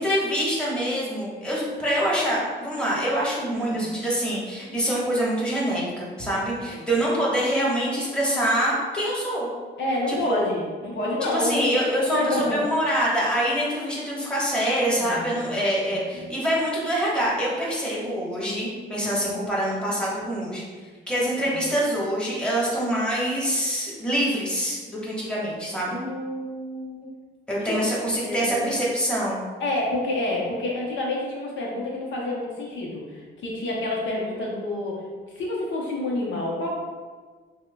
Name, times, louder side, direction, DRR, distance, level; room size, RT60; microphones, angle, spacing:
voice 1, 0.0-9.5 10.1-10.5 11.2-20.6 21.1-26.0 27.5-29.4, equal, 5° left, -6 dB, 1.2 m, -25 dB
voice 2, 3.5-3.9 6.6-6.7 9.8-11.6 12.1-12.6 14.9-15.6 16.1-16.3 21.5-21.7 25.9-27.1 27.6-27.8 28.2-28.7 29.6-35.0 35.3-36.7, left 1 dB, 70° left, -3 dB, 0.8 m, -29 dB
6.2 x 2.1 x 2.2 m, 1.5 s
cardioid pair, 90°, 20 cm